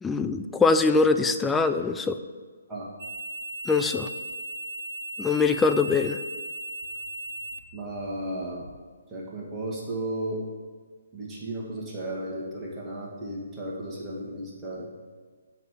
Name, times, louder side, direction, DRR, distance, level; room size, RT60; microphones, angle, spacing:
voice 1, 0.0-2.2 3.7-4.1 5.2-6.2, left 4 dB, 10° left, 8 dB, 0.3 m, -23 dB
sound 1, 3.0-8.8, right 1 dB, 75° right, 0.5 m, -37 dB
voice 2, 7.7-8.6 9.1-10.4 11.1-14.9, right 1 dB, 15° right, -5 dB, 1.7 m, -34 dB
6.5 x 4.1 x 6.5 m, 1.5 s
figure-of-eight pair, 135°, 0 cm